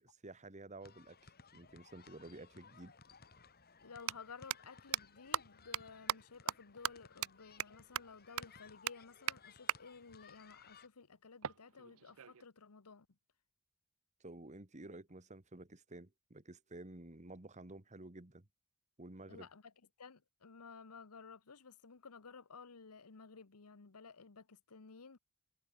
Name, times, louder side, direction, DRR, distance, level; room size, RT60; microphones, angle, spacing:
voice 1, 0.0-2.9 14.2-18.5 19.0-19.5, right 2 dB, 30° right, 1.7 m, -52 dB
sound 1, 0.8-10.9, left 5 dB, 45° left, 3.7 m, -61 dB
sound 2, 2.8-2.9 3.9-4.1 4.5-4.6 4.9-5.0 5.3-5.4 5.7-5.8 6.1-6.2 6.5-6.6 6.8-6.9 7.2-7.3 7.6-7.7 7.9-8.0 8.4-8.5 8.9-9.0 9.3-9.4 9.7-9.8 11.4-12.4, right 10 dB, 65° right, 0.7 m, -37 dB
voice 2, 3.8-13.1 19.3-19.7 20.0-25.2, left 5 dB, 80° left, 1.1 m, -55 dB
head